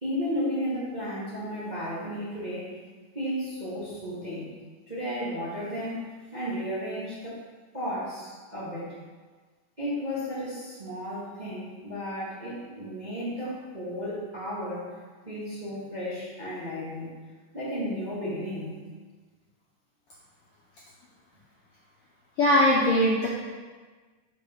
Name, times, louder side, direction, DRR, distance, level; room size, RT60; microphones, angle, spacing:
voice 1, 0.0-2.7 3.1-4.5 4.9-6.0 6.3-7.4 7.7-8.9 9.8-14.9 15.2-17.1 17.5-18.8, equal, 20° right, -10 dB, 1.2 m, -33 dB
voice 2, 22.4-23.3, left 1 dB, 75° left, -4 dB, 1.4 m, -20 dB
4.9 x 4.6 x 5.4 m, 1.4 s
omnidirectional pair, 3.3 m